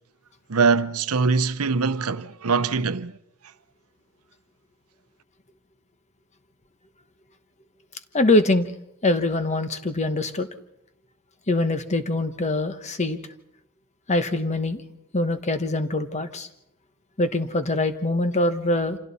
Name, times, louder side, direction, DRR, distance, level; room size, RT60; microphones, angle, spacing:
voice 1, 0.5-3.2, right 4 dB, 80° right, 0.8 m, -22 dB
voice 2, 8.1-8.7 9.0-10.5 11.5-13.2 14.1-14.8 15.1-16.5 17.2-19.0, left 2 dB, 30° left, 1.1 m, -23 dB
28.5 x 26.0 x 4.2 m
head